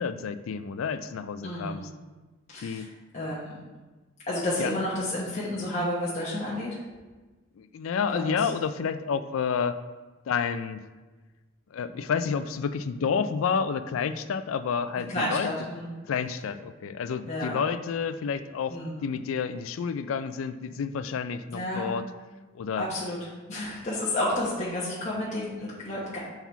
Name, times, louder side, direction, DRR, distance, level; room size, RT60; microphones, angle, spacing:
voice 1, 0.0-1.8 2.6-2.9 4.6-4.7 7.6-9.8 10.3-10.9 11.7-15.5 16.1-18.8 19.0-22.0 22.5-22.9, left 6 dB, 85° left, 12 dB, 0.4 m, -29 dB
voice 2, 1.4-1.9 2.5-2.9 3.1-3.5 4.3-6.8 8.1-8.5 15.1-15.9 17.3-17.6 18.7-19.2 21.5-21.9 22.8-23.2 23.5-26.2, left 1 dB, 35° left, -8 dB, 1.1 m, -31 dB
5.9 x 4.0 x 4.0 m, 1.2 s
head